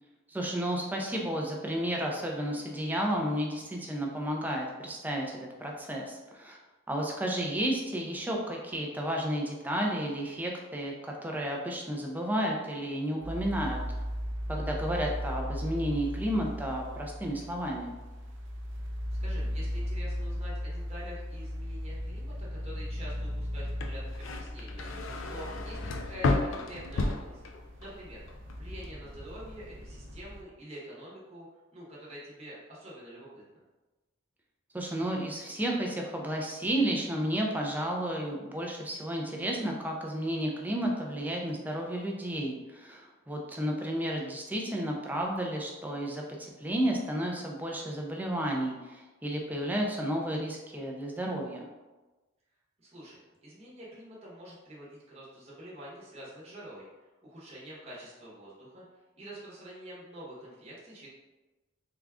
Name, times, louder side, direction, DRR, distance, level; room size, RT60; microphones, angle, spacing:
voice 1, 0.3-6.6 6.9-13.8 14.5-17.9 34.7-51.7, right 1 dB, 10° right, 0 dB, 0.4 m, -32 dB
sound 1, 13.2-30.4, equal, 60° right, 0.5 m, -37 dB
voice 2, 19.2-27.4 27.8-28.2 28.6-31.5 31.7-33.4 52.8-56.9 57.2-58.8 59.2-61.1, equal, 30° right, -7 dB, 0.9 m, -46 dB
sound 2, 23.7-28.0 28.3-28.8, left 3 dB, 70° left, 0.4 m, -32 dB
3.7 x 2.3 x 3.4 m, 1.2 s
head